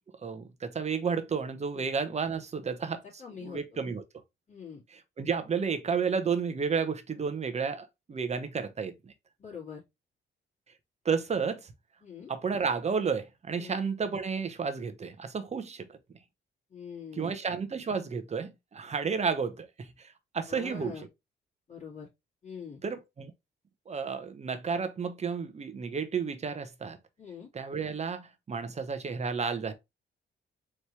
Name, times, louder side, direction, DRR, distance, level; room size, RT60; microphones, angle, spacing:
voice 1, 0.2-4.0 4.9-9.1 11.0-11.7 12.3-16.0 17.1-21.1 22.8-23.3 23.9-27.0 27.5-29.7, right 5 dB, 35° right, 0.9 m, -32 dB
voice 2, 3.2-3.6 4.5-4.8 9.4-9.8 12.0-12.3 13.6-13.8 16.7-17.4 20.5-21.0 21.7-22.1 22.4-22.8 27.2-27.5, left 6 dB, 35° left, 2.5 m, -43 dB
4.4 x 3.3 x 3.1 m
cardioid pair, 90°, 20 cm